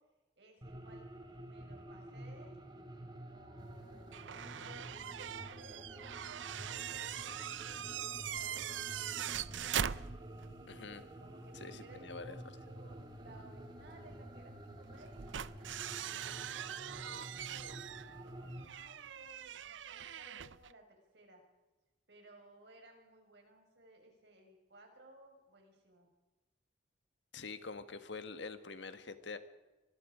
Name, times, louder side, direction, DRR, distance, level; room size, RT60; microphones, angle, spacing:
voice 1, 0.4-2.6 3.1-6.1 6.4-9.2 11.2-15.2 16.0-17.8 18.2-21.4 22.1-26.1, right 1 dB, 65° right, 3 dB, 5.7 m, -60 dB
sound 1, 0.6-18.7, right 1 dB, 25° right, 2.4 m, -50 dB
sound 2, 4.1-10.6 10.9-11.0 13.1-13.2 14.9-20.7, right 9 dB, 85° right, 0.6 m, -42 dB
voice 2, 10.7-11.1 11.6-12.4 27.3-29.4, left 4 dB, 70° left, 10 dB, 1.5 m, -45 dB
25.0 x 20.5 x 5.1 m, 1.1 s
head